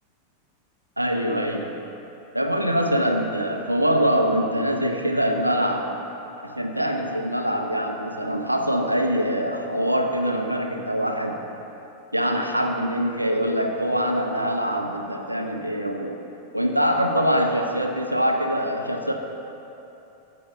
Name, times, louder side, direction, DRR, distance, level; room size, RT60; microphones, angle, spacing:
voice 1, 1.0-1.7 2.3-5.9 6.4-11.4 12.1-16.2 16.5-19.1, equal, 85° right, 2 dB, 0.8 m, -24 dB
15.0 x 5.5 x 3.5 m, 2.9 s
figure-of-eight pair, 90°, 0 cm